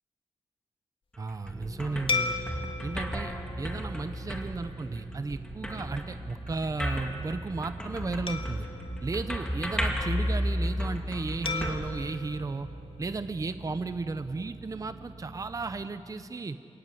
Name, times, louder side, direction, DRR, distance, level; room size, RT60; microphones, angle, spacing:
sound 1, 1.1-12.6, equal, 5° left, 2.2 m, -34 dB
voice 1, 1.2-2.4 2.8-8.7 9.0-12.7 13.0-16.6, right 3 dB, 30° right, 10 dB, 0.7 m, -34 dB
sound 2, 1.5-15.9, right 3 dB, 15° right, 1.0 m, -45 dB
sound 3, 2.1-4.8 5.3-5.5 8.3-10.1 11.5-13.7, left 4 dB, 55° left, 1.7 m, -37 dB
27.5 x 16.5 x 9.6 m, 2.8 s
wide cardioid pair, 150°, 11 cm